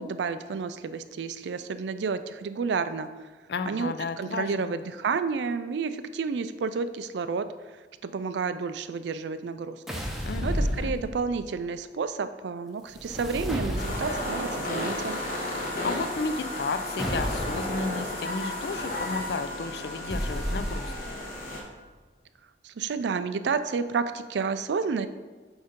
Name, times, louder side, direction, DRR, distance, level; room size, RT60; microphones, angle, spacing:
voice 1, 0.0-3.1 3.7-7.5 8.0-9.8 10.1-15.2 22.6-25.1, right 5 dB, 80° right, 11 dB, 0.4 m, -30 dB
voice 2, 3.5-4.7 10.2-10.9 15.8-21.2, left 4 dB, 65° left, 11 dB, 0.4 m, -33 dB
sound 1, 9.9-11.5 12.9-14.4 17.0-17.8 20.1-21.2, equal, ahead, 0.6 m, -31 dB
sound 2, 13.8-21.6, left 1 dB, 50° left, 1.4 m, -33 dB
8.0 x 2.7 x 5.1 m, 1.3 s
head